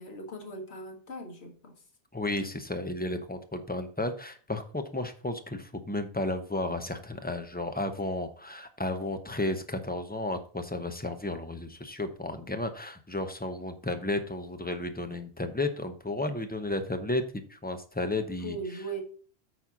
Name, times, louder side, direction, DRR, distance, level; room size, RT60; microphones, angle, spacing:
voice 1, 0.0-1.8 18.4-19.0, right 2 dB, 85° left, 1.9 m, -39 dB
voice 2, 2.1-18.6, left 2 dB, 10° left, 0.8 m, -33 dB
8.8 x 4.3 x 6.0 m
omnidirectional pair, 1.1 m